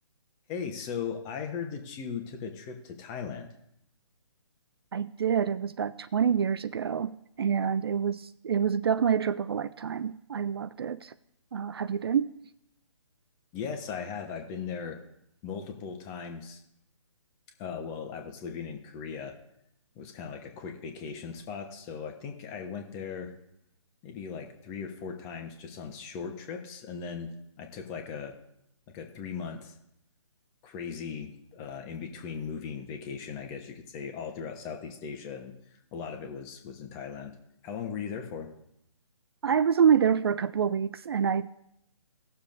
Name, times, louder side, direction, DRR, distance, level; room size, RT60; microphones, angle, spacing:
voice 1, 0.5-3.5 13.5-15.0 15.4-16.6 17.6-19.3 19.9-23.3 24.0-27.3 27.6-28.3 28.9-29.7 30.6-35.5 35.9-37.4 37.6-38.5, left 6 dB, 20° left, 1.2 m, -38 dB
voice 2, 4.9-11.1 11.5-12.3 39.4-41.6, right 7 dB, 50° right, 0.4 m, -27 dB
18.5 x 6.9 x 2.6 m
figure-of-eight pair, 140°, 16 cm